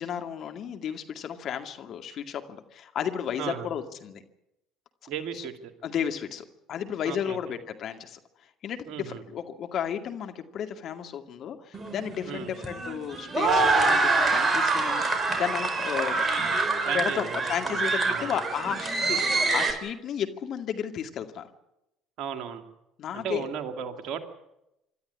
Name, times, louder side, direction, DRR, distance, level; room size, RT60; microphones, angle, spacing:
voice 1, 0.0-4.2 5.3-5.5 5.8-8.2 8.6-16.3 16.9-21.5 23.0-23.4, left 8 dB, 50° left, 6 dB, 2.2 m, -33 dB
voice 2, 5.1-5.7 7.0-7.4 8.9-9.2 12.3-12.5 16.8-18.3 22.2-22.6 23.1-24.2, right 8 dB, 55° right, 8 dB, 2.5 m, -35 dB
sound 1, 11.7-19.7, right 3 dB, 25° right, 4.5 m, -25 dB
26.5 x 12.5 x 9.8 m, 0.86 s
figure-of-eight pair, 60°, 0 cm